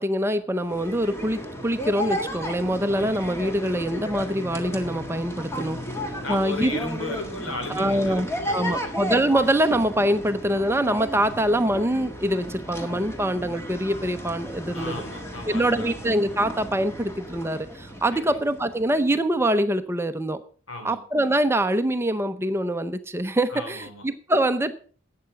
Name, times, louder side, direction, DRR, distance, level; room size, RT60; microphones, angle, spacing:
voice 1, 0.0-5.8 6.3-6.8 7.7-8.3 8.5-15.0 15.5-20.4 20.8-24.7, right 1 dB, 10° right, 11 dB, 0.6 m, -24 dB
sound 1, 0.6-19.1, equal, 15° left, 1.7 m, -34 dB
voice 2, 6.2-8.9 14.7-15.9 18.1-18.4 20.7-21.0 23.5-24.0, left 2 dB, 85° left, 5 dB, 3.3 m, -35 dB
12.0 x 8.5 x 5.7 m, 0.43 s
head